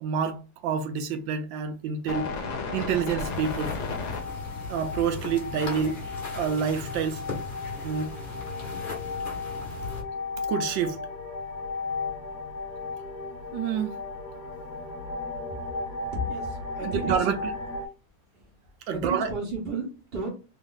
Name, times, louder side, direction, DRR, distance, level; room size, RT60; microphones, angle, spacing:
voice 1, 0.0-2.3 2.7-3.8 4.7-6.0 6.4-7.2 7.8-8.2 10.5-11.0 13.5-14.0 16.8-17.4 18.9-19.3, right 7 dB, 75° right, 1.1 m, -28 dB
sound 1, 2.1-17.9, left 3 dB, 65° left, 1.1 m, -35 dB
sound 2, 3.2-10.0, left 3 dB, 35° left, 0.9 m, -38 dB
voice 2, 16.1-17.3 18.3-20.3, right 2 dB, 45° right, 0.8 m, -34 dB
3.5 x 2.4 x 3.8 m
omnidirectional pair, 2.3 m